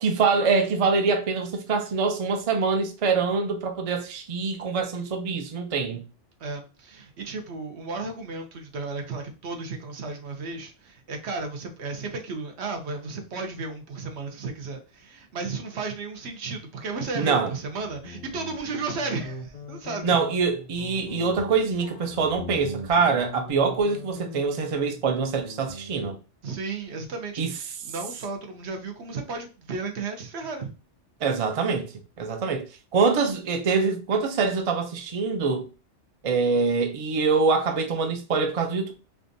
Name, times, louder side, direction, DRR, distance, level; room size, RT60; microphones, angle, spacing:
voice 1, 0.0-6.0 17.1-17.5 20.0-26.2 27.4-27.5 31.2-32.7 32.9-35.6 36.2-38.9, right 4 dB, 50° right, 0.4 m, -24 dB
voice 2, 6.4-20.2 26.4-30.7, right 3 dB, 70° right, 1.0 m, -34 dB
Guitar, 17.7-26.2, left 2 dB, 45° left, 0.5 m, -40 dB
3.5 x 2.5 x 2.5 m
omnidirectional pair, 1.2 m